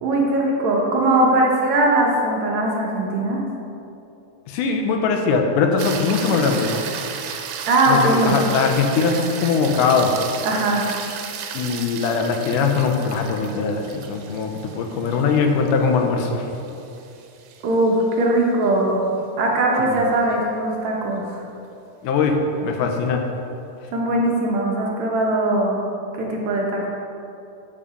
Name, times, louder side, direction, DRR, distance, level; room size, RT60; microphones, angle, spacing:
voice 1, 0.0-3.4 7.7-8.4 10.4-10.8 17.6-19.0 19.4-21.4 23.9-25.8 26.1-26.9, right 2 dB, 65° right, -2 dB, 2.2 m, -20 dB
voice 2, 4.5-6.7 7.9-10.1 11.5-16.5 19.8-20.0 22.0-23.2, left 5 dB, 85° left, 3 dB, 2.4 m, -21 dB
sound 1, 5.8-18.2 22.7-22.8, right 7 dB, 85° right, 2.3 m, -34 dB
11.5 x 5.5 x 5.1 m, 2.7 s
omnidirectional pair, 3.7 m